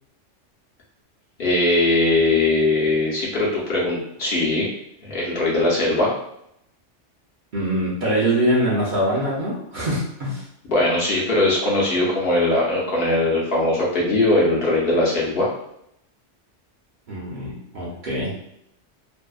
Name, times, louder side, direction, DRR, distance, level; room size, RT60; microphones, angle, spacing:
voice 1, 1.4-4.7 5.0-6.1 10.7-15.5, left 2 dB, 60° left, -5 dB, 0.8 m, -20 dB
voice 2, 7.5-10.4 17.1-18.3, right 1 dB, 50° right, -6 dB, 0.6 m, -23 dB
2.6 x 2.0 x 2.3 m, 0.78 s
omnidirectional pair, 1.3 m